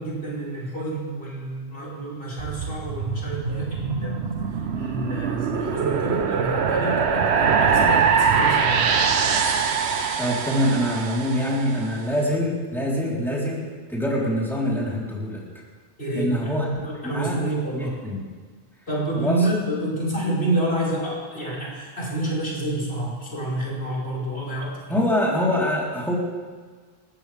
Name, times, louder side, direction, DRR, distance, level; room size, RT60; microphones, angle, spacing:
voice 1, 0.0-4.2 4.8-8.9 16.0-16.5 16.8-18.0 18.9-25.0, right 1 dB, 75° left, -6 dB, 5.5 m, -28 dB
sound 1, 2.4-11.8, right 6 dB, 90° right, 1.2 m, -23 dB
voice 2, 10.2-15.4 16.1-17.4 17.7-18.2 19.2-19.5 24.9-26.1, equal, ahead, -6 dB, 3.9 m, -25 dB
28.5 x 14.0 x 3.5 m, 1.5 s
omnidirectional pair, 1.1 m